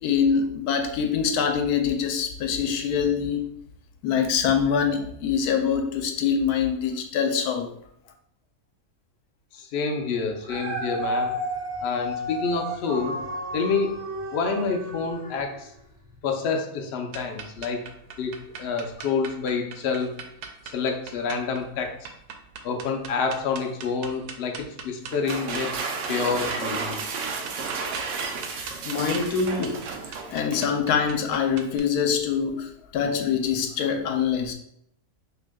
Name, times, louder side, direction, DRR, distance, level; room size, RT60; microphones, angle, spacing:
voice 1, 0.0-3.5 4.0-7.7 28.6-29.8 30.3-34.5, left 7 dB, 85° left, 5 dB, 1.1 m, -24 dB
voice 2, 9.5-11.3 11.8-13.2 13.5-13.9 14.3-15.7 16.2-17.8 18.2-18.3 18.6-20.1 20.6-22.1 22.6-27.0, left 5 dB, 60° left, 2 dB, 0.7 m, -28 dB
Dog, 10.2-15.6 16.1-16.2, equal, 20° right, 1.1 m, -32 dB
sound 1, 17.1-31.8, right 6 dB, 85° right, 1.1 m, -41 dB
sound 2, 25.1-30.7, right 4 dB, 65° right, 0.8 m, -32 dB
6.0 x 2.9 x 2.2 m, 0.72 s
omnidirectional pair, 1.6 m